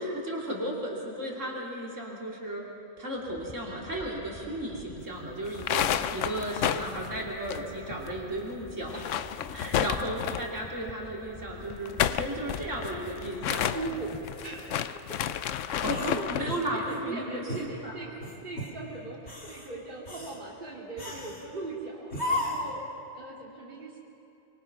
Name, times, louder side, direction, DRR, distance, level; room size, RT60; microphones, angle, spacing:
voice 1, 0.0-2.6 3.0-9.2 9.5-13.8 15.8-18.0, right 1 dB, 70° right, -3 dB, 3.7 m, -35 dB
sound 1, 3.2-14.7, left 3 dB, 25° left, 0.8 m, -48 dB
sound 2, 5.5-8.1 8.3-8.4 8.8-10.6 11.7-16.5, left 10 dB, 75° left, 1.0 m, -31 dB
voice 2, 13.4-15.4 15.9-22.8 23.1-24.0, right 3 dB, 40° right, -4 dB, 2.9 m, -40 dB
sound 3, 15.9-17.1 17.5-17.7 18.2-18.8 19.2-19.7 20.1-20.4 21.0-21.5 22.1-22.8, left 1 dB, 55° left, 2.7 m, -34 dB
24.0 x 24.0 x 6.1 m, 2.8 s
omnidirectional pair, 1.3 m